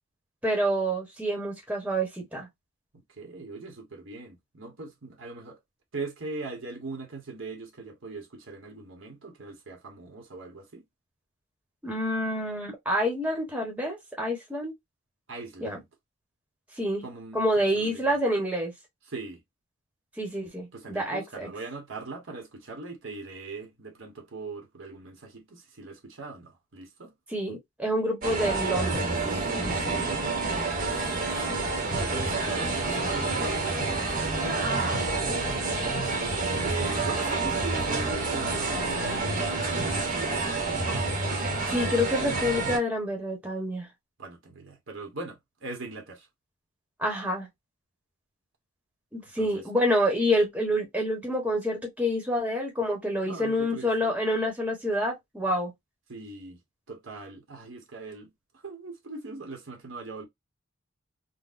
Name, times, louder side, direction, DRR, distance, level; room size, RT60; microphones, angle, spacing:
voice 1, 0.4-2.5 11.8-14.7 15.6-15.8 16.7-17.0 17.3-18.7 20.2-21.5 27.3-29.1 29.6-29.9 31.3-31.5 41.7-43.9 47.0-47.5 49.1-55.7, equal, 5° right, 1.0 m, -28 dB
voice 2, 2.9-5.6 5.9-10.8 15.3-15.8 17.0-18.0 19.1-19.4 20.7-27.1 29.7-30.8 31.7-40.5 44.2-46.3 49.4-49.6 53.3-54.1 56.1-56.6 56.9-60.3, right 3 dB, 65° right, 1.1 m, -41 dB
sound 1, 28.2-42.8, right 3 dB, 40° right, 1.0 m, -28 dB
4.0 x 2.2 x 2.5 m
head